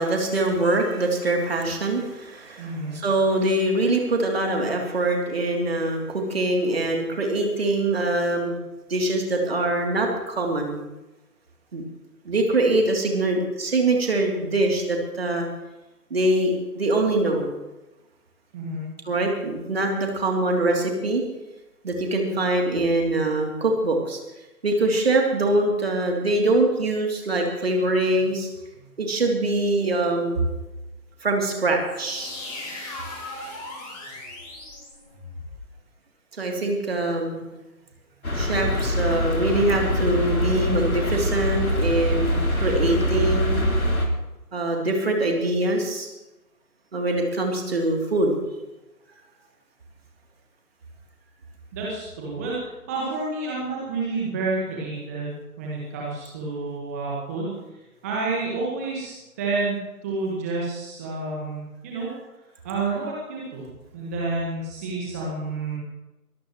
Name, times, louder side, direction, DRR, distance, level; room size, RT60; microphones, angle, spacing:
voice 1, 0.0-8.6 8.9-10.8 11.7-11.8 12.2-15.5 16.1-17.5 19.0-21.2 21.8-24.2 24.6-28.5 28.8-30.4 31.2-32.3 36.4-37.4 38.3-43.6 44.5-46.1 46.9-48.4, right 2 dB, 40° right, 1 dB, 3.2 m, -23 dB
voice 2, 2.6-2.9 18.5-18.8 51.7-57.5 58.0-62.1 62.6-65.8, right 3 dB, 10° right, -5 dB, 1.6 m, -29 dB
sound 1, 31.8-35.6, left 2 dB, 25° left, 5.6 m, -37 dB
sound 2, 38.2-44.1, left 1 dB, 65° left, 3.9 m, -24 dB
23.5 x 17.0 x 3.2 m, 1.0 s
figure-of-eight pair, 150°, 47 cm